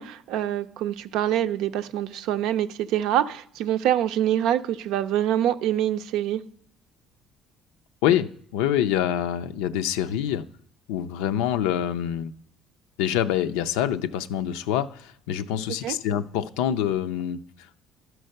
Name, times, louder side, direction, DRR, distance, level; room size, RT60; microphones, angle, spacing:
voice 1, 0.0-6.4 15.8-16.0, right 11 dB, 75° right, 0.5 m, -25 dB
voice 2, 8.0-10.5 10.9-12.3 13.0-17.4, left 10 dB, 90° left, 0.4 m, -26 dB
12.0 x 4.5 x 6.5 m
supercardioid pair, 80°, 0 cm